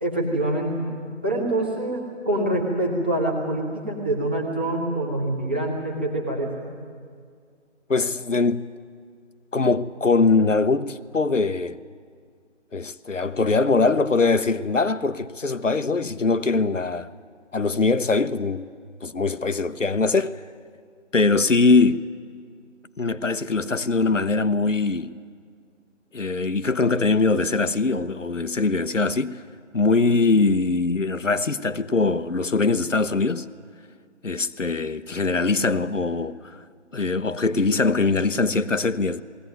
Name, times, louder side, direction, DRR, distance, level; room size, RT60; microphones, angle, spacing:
voice 1, 0.0-0.8 1.2-6.7, right 1 dB, 10° right, 1.0 m, -25 dB
voice 2, 7.9-8.7 9.5-11.8 12.7-17.1 17.5-18.7 19.0-20.4 21.1-22.0 23.0-25.2 26.1-29.4 29.7-33.5 34.2-36.6 36.9-39.2, left 3 dB, 90° left, 0.9 m, -22 dB
20.0 x 17.0 x 9.3 m
figure-of-eight pair, 160°, 37 cm